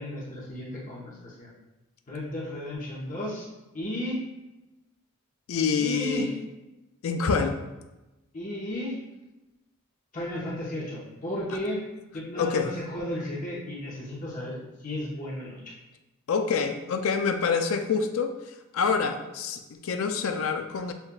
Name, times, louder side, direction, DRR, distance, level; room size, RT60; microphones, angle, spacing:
voice 1, 0.0-1.5 2.1-3.5 3.7-4.2 5.8-6.3 8.3-9.0 10.1-11.8 12.1-15.7, left 1 dB, 35° left, -6 dB, 0.8 m, -34 dB
voice 2, 5.5-6.3 7.0-7.6 12.4-12.7 16.3-18.4 18.7-20.9, left 5 dB, 70° left, 6 dB, 0.4 m, -26 dB
6.8 x 2.3 x 2.2 m, 1.0 s
head